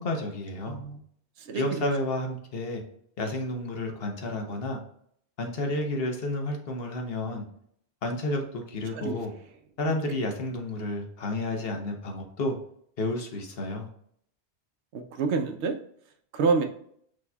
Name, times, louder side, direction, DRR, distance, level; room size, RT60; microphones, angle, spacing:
voice 1, 0.0-0.8 1.5-2.8 3.2-4.8 5.4-7.4 8.0-9.3 9.8-12.5 13.0-13.9, left 2 dB, 65° left, 3 dB, 1.0 m, -31 dB
voice 2, 0.7-1.0 1.4-1.8 8.9-9.1 14.9-15.8 16.3-16.6, right 4 dB, 90° right, 6 dB, 0.9 m, -28 dB
6.2 x 3.0 x 2.3 m, 0.66 s
omnidirectional pair, 1.1 m